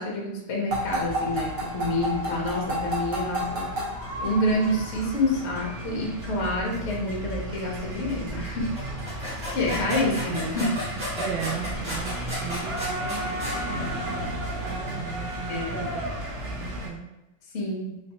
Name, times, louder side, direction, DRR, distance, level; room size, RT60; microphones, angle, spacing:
voice 1, 0.0-3.8 4.2-8.8 9.1-9.2 9.5-10.9 15.5-15.9 17.5-18.0, left 1 dB, 65° left, -2 dB, 0.6 m, -28 dB
sound 1, 0.7-16.9, right 1 dB, 50° right, 0.7 m, -33 dB
sound 2, 8.8-13.6, left 1 dB, 15° right, 1.3 m, -33 dB
voice 2, 11.2-14.3 14.6-16.0 16.5-17.1, right 7 dB, 80° right, 0 dB, 1.4 m, -36 dB
3.2 x 3.0 x 2.9 m, 0.94 s
omnidirectional pair, 2.2 m